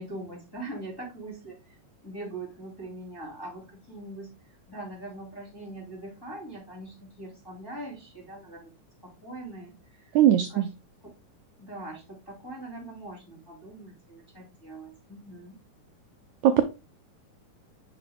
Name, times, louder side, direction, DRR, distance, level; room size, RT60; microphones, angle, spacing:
voice 1, 0.0-1.8 2.0-8.7 9.0-10.7 11.0-11.1 11.6-15.6, right 2 dB, 10° left, -5 dB, 2.0 m, -42 dB
voice 2, 10.1-10.7 16.4-16.6, right 11 dB, 80° right, 7 dB, 1.7 m, -19 dB
5.8 x 4.9 x 3.5 m, 0.29 s
omnidirectional pair, 3.9 m